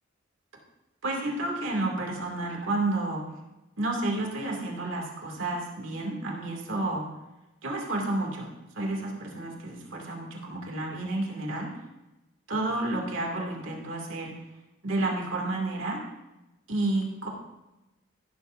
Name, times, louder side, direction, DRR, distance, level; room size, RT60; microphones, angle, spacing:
voice 1, 1.0-3.2 3.8-7.0 7.6-8.5 8.7-11.7 12.5-14.3 14.8-16.0 16.7-17.3, right 2 dB, 70° right, 0 dB, 2.4 m, -30 dB
14.5 x 12.5 x 2.6 m, 0.99 s
head